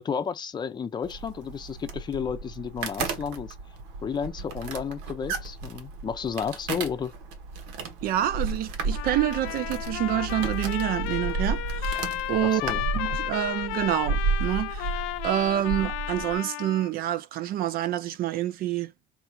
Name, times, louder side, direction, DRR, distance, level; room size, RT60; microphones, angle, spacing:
voice 1, 0.0-3.6 4.0-7.1 12.4-13.2, left 7 dB, 20° left, 0.6 m, -32 dB
sound 1, 1.0-16.4, right 4 dB, 85° right, 1.3 m, -33 dB
voice 2, 8.0-12.6 12.9-18.9, right 12 dB, 50° right, 0.4 m, -27 dB
Trumpet, 8.9-16.9, left 15 dB, 85° left, 0.6 m, -34 dB
3.8 x 2.4 x 4.6 m
cardioid pair, 145°, 20 cm